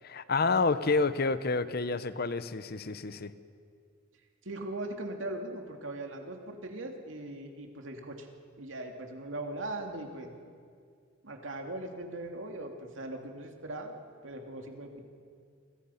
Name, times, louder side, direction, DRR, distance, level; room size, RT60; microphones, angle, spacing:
voice 1, 0.0-3.3, left 3 dB, 55° left, 13 dB, 0.9 m, -29 dB
voice 2, 4.4-8.3 8.6-10.3 11.2-14.0 14.2-15.0, right 1 dB, 80° right, 3 dB, 2.6 m, -40 dB
30.0 x 23.0 x 5.8 m, 2.3 s
head